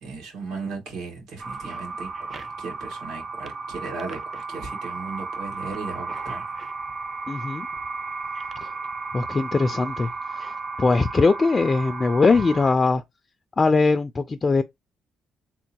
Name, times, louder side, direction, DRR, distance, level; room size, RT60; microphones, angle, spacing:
voice 1, 0.0-6.5, right 4 dB, 85° right, 2.2 m, -36 dB
sound 1, 1.4-12.7, right 4 dB, 40° right, 0.6 m, -34 dB
voice 2, 7.3-7.7 8.6-8.7 9.1-13.0 13.6-14.6, left 3 dB, 30° left, 0.3 m, -21 dB
3.7 x 2.1 x 4.4 m
cardioid pair, 90°, 0 cm